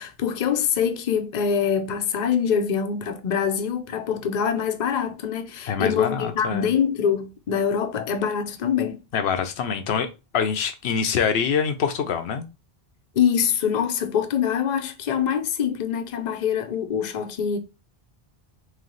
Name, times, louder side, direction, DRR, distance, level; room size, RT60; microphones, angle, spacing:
voice 1, 0.0-9.0 13.2-17.6, left 7 dB, 50° left, 0.7 m, -24 dB
voice 2, 5.7-6.7 9.1-10.1 10.3-12.5, left 6 dB, 90° left, 0.9 m, -25 dB
3.2 x 3.2 x 3.8 m
omnidirectional pair, 1.0 m